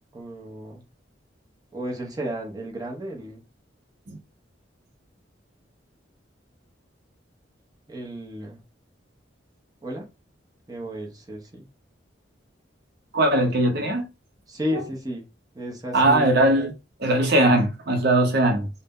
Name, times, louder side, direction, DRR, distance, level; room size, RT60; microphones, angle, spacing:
voice 1, 0.1-0.8 1.7-3.4 7.9-8.6 9.8-10.1 10.7-11.7 14.5-15.2 15.5-16.4, equal, 20° right, 0.7 m, -33 dB
voice 2, 13.1-14.0 14.7-14.8 15.9-16.7 17.0-18.7, right 1 dB, 60° right, 0.7 m, -20 dB
2.7 x 2.1 x 3.5 m
head